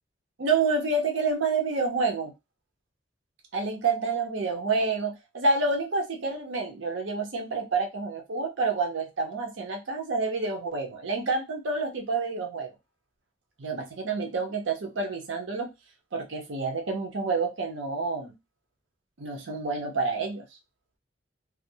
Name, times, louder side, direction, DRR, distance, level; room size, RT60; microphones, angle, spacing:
voice 1, 0.4-2.3 3.5-12.7 13.6-15.7 16.1-18.3 19.2-20.4, right 3 dB, 90° right, 3 dB, 0.7 m, -28 dB
2.4 x 2.0 x 2.7 m, 0.21 s
head